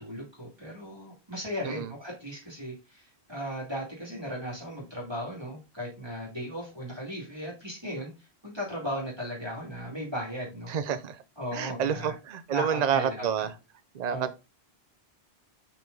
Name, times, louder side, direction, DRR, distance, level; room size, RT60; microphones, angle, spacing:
voice 1, 0.0-10.7 11.4-12.1 12.5-13.5 14.1-14.4, equal, 25° right, 2.7 m, -37 dB
voice 2, 10.7-11.2 11.5-13.5 13.9-14.4, right 8 dB, 45° right, 0.7 m, -29 dB
5.7 x 4.6 x 3.9 m
omnidirectional pair, 1.1 m